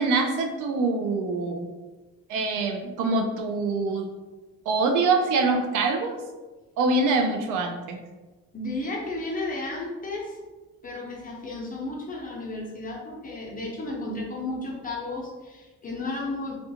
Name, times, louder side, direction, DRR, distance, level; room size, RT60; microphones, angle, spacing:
voice 1, 0.0-1.7 2.3-4.1 4.7-6.2 6.8-8.0, right 3 dB, 90° right, 4 dB, 0.5 m, -24 dB
voice 2, 8.5-10.4 10.8-16.5, left 2 dB, 30° left, -2 dB, 0.7 m, -33 dB
2.4 x 2.3 x 2.7 m, 1.2 s
cardioid pair, 90°, 30 cm